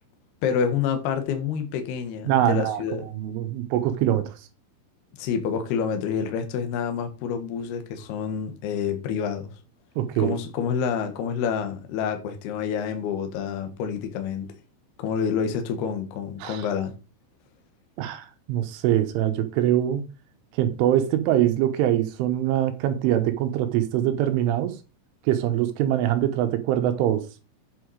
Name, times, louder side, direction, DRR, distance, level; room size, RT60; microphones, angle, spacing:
voice 1, 0.4-3.1 5.2-9.5 10.2-14.5 15.0-16.9, left 7 dB, 65° left, 2.9 m, -28 dB
voice 2, 2.3-2.8 3.1-4.3 10.0-10.4 16.4-16.6 18.0-20.0 20.5-24.8 25.3-27.3, right 12 dB, 75° right, 3.3 m, -23 dB
8.8 x 6.9 x 4.7 m
omnidirectional pair, 5.9 m